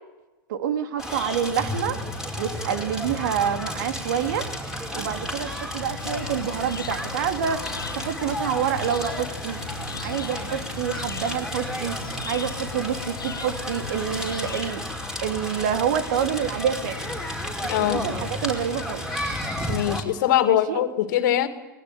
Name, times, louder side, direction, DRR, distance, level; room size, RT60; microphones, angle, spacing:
voice 1, 0.5-2.0 2.4-4.5 4.9-7.6 8.0-9.6 10.0-12.0 12.2-14.8 15.2-17.1 17.6-19.0 20.5-20.8, right 8 dB, 65° right, 8 dB, 2.6 m, -27 dB
Crackle, 1.0-20.0, left 1 dB, 5° right, 5.3 m, -32 dB
sound 1, 6.0-14.7, left 6 dB, 90° left, 1.4 m, -38 dB
voice 2, 17.7-18.1 19.7-21.5, left 12 dB, 60° left, 9 dB, 2.4 m, -22 dB
24.0 x 20.5 x 8.6 m, 1.1 s
hypercardioid pair, 100°, 11 cm